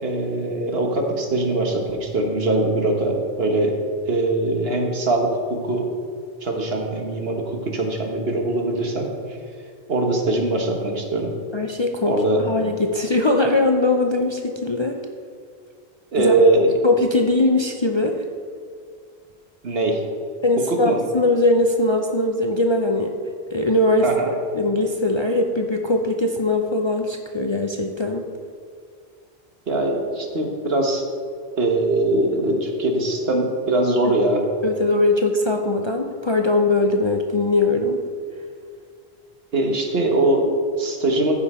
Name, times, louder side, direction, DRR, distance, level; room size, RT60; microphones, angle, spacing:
voice 1, 0.0-3.8 4.1-5.9 6.4-9.1 9.9-11.4 12.0-12.4 16.1-16.7 19.6-20.0 20.7-21.0 24.0-24.3 29.7-31.1 31.6-34.4 39.5-41.4, right 2 dB, 70° right, 2 dB, 1.5 m, -21 dB
voice 2, 11.5-15.0 16.2-16.3 16.8-18.2 20.4-23.2 23.5-24.1 24.5-28.2 34.0-34.1 34.6-38.0, left 2 dB, 35° left, 2 dB, 0.5 m, -21 dB
14.0 x 5.7 x 4.2 m, 2.3 s
omnidirectional pair, 1.1 m